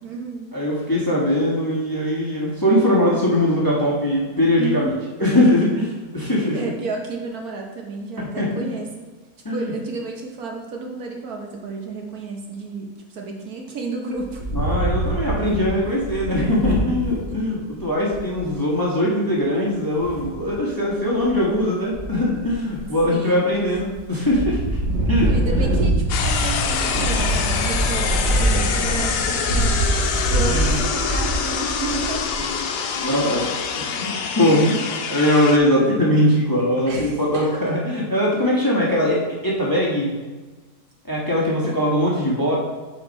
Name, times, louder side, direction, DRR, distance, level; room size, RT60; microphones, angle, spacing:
voice 1, 0.0-0.6 4.6-5.3 6.5-9.1 9.5-14.5 17.3-17.4 23.1-23.7 25.2-29.7 30.3-32.4 33.0-33.2 36.9-37.6 41.6-41.7, right 3 dB, 65° right, 1 dB, 1.3 m, -31 dB
voice 2, 0.5-4.9 5.2-6.6 8.2-8.5 9.4-9.7 14.5-24.8 25.1-25.3 30.5-30.8 33.0-33.5 33.7-34.8 35.1-40.1 41.0-42.6, left 1 dB, 15° left, -5 dB, 1.1 m, -21 dB
Wind, 14.2-17.3 17.8-17.9 18.1-18.5 19.9-20.5 21.1-21.6 21.9-23.0 23.5-24.0 24.3-32.5, right 1 dB, 40° right, 2.0 m, -24 dB
sound 1, 26.1-35.6, left 6 dB, 85° left, 1.3 m, -25 dB
8.4 x 4.5 x 4.1 m, 1.3 s
omnidirectional pair, 1.8 m